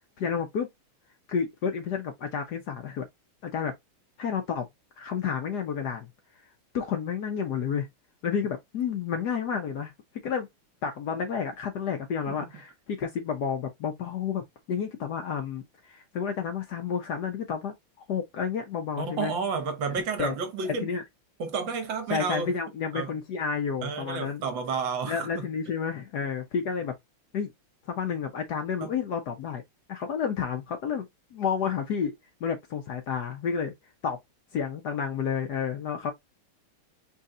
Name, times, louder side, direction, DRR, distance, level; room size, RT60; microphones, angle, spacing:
voice 1, 0.2-0.7 1.3-3.1 3.4-3.7 4.2-4.7 5.0-6.1 6.7-7.9 8.2-9.9 10.2-10.5 10.8-14.4 14.7-17.7 18.1-19.3 19.9-20.3 20.8-21.0 22.1-24.4 25.1-26.9 27.3-27.5 27.9-29.6 29.9-31.1 31.3-32.1 32.4-33.7 34.0-34.2 34.5-36.1, left 6 dB, 60° left, 1.1 m, -30 dB
voice 2, 12.3-12.6 19.0-20.9 21.4-22.5 22.9-23.1 23.8-25.7 28.8-28.9, right 5 dB, 65° right, 1.6 m, -31 dB
4.2 x 3.1 x 3.7 m
omnidirectional pair, 2.3 m